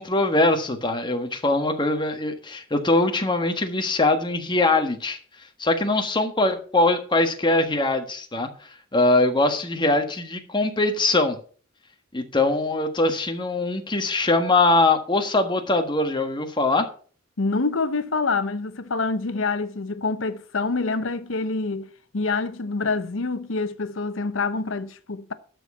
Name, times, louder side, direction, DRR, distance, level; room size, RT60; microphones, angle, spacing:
voice 1, 0.0-5.2 5.6-8.5 8.9-11.4 12.1-16.9, left 2 dB, 25° left, 1.4 m, -22 dB
voice 2, 17.4-25.3, left 3 dB, 70° left, 0.9 m, -26 dB
12.5 x 4.5 x 7.0 m
head